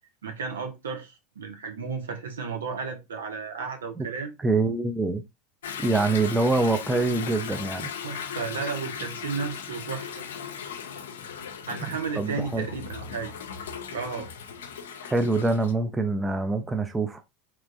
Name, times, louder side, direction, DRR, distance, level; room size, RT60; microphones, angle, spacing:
voice 1, 0.2-4.3 8.0-10.2 11.7-13.3 13.9-14.3, right 5 dB, 80° right, 0.7 m, -33 dB
voice 2, 4.4-5.2 5.8-7.9 12.1-12.7 15.0-17.2, right 3 dB, 15° right, 0.5 m, -25 dB
Toilet flush / Drip / Trickle dribble, 5.6-15.7, left 7 dB, 75° left, 0.4 m, -37 dB
3.4 x 3.0 x 2.7 m
hypercardioid pair, 85°, 0 cm